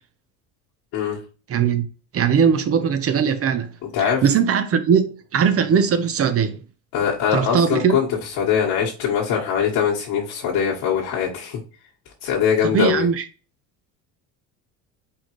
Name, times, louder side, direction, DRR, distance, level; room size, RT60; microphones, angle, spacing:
voice 1, 1.5-1.9 2.1-3.7 4.0-6.6 7.3-8.0 12.6-13.2, right 7 dB, 35° right, 0.9 m, -20 dB
voice 2, 6.9-8.1 8.4-11.6 12.2-13.1, left 7 dB, 70° left, 1.7 m, -22 dB
4.7 x 3.5 x 3.2 m
supercardioid pair, 95°, 39 cm